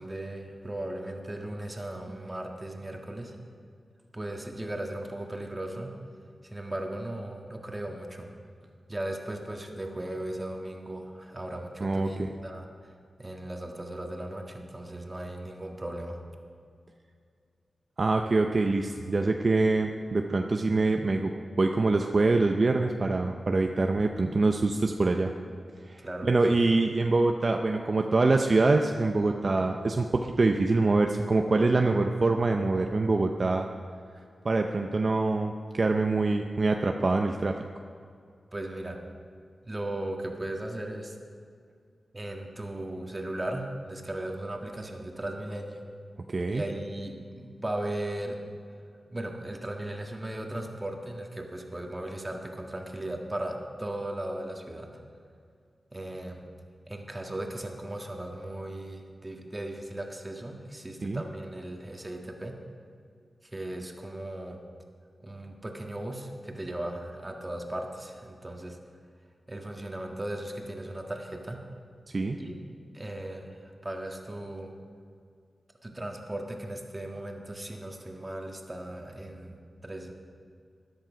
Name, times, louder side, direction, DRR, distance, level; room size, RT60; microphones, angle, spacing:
voice 1, 0.0-3.4 4.1-5.9 6.4-8.3 8.9-12.7 13.2-16.2 26.0-26.6 38.5-39.0 39.6-41.1 42.1-45.8 46.5-48.4 49.1-54.9 55.9-56.4 56.9-62.5 63.4-64.6 65.2-68.8 69.5-71.6 72.4-72.6 72.9-74.7 75.8-79.6 79.8-80.1, right 1 dB, 20° right, 2 dB, 1.7 m, -37 dB
voice 2, 11.8-12.3 18.0-21.3 21.6-25.3 25.9-33.7 34.4-37.6 46.3-46.6 61.0-61.2 72.1-72.4, right 3 dB, 45° right, 4 dB, 0.6 m, -25 dB
13.5 x 10.5 x 5.1 m, 2.3 s
cardioid pair, 65°, 0 cm